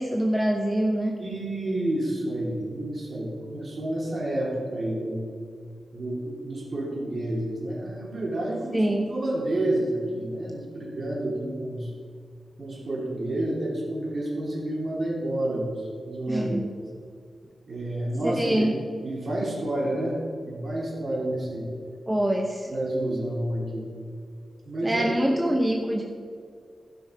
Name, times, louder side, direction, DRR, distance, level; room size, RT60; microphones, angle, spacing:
voice 1, 0.0-1.1 8.7-9.1 16.3-16.6 18.2-18.7 22.1-22.7 24.8-26.0, right 1 dB, 10° right, 1 dB, 0.8 m, -25 dB
voice 2, 1.2-5.3 5.9-8.8 9.1-11.9 12.6-16.7 17.7-18.7 19.0-21.7 22.7-23.8 24.6-25.0 25.4-25.6, right 1 dB, 45° right, -4 dB, 3.1 m, -29 dB
15.5 x 6.0 x 5.1 m, 2.2 s
wide cardioid pair, 135°, 0 cm